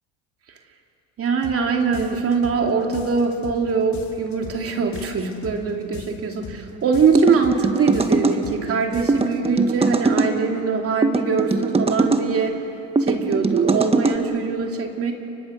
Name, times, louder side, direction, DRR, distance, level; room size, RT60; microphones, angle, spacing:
voice 1, 1.2-12.6 13.0-15.1, right 5 dB, 40° right, 2 dB, 2.9 m, -22 dB
sound 1, 1.4-1.6 1.9-2.6 2.9-3.6 3.9-4.6 4.9-5.6 5.9-6.6 6.9-7.6 7.9-8.6 8.9-9.4, left 7 dB, 50° left, 3.4 m, -38 dB
sound 2, 7.1-8.4 9.1-10.3 11.0-12.3 13.0-14.2, right 3 dB, 15° right, 1.7 m, -21 dB
30.0 x 24.0 x 6.5 m, 2.8 s
supercardioid pair, 90°, 35 cm